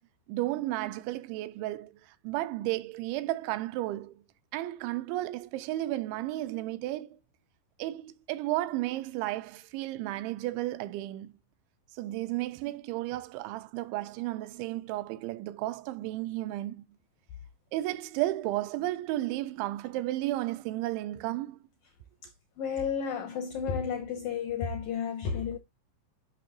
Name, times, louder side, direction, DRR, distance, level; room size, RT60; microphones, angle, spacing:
voice 1, 0.3-4.2 4.5-7.2 7.8-11.3 11.9-16.9 17.7-21.6, right 16 dB, 85° right, 3.0 m, -33 dB
voice 2, 22.2-25.6, left 6 dB, 80° left, 2.0 m, -32 dB
9.3 x 6.0 x 2.9 m
omnidirectional pair, 5.3 m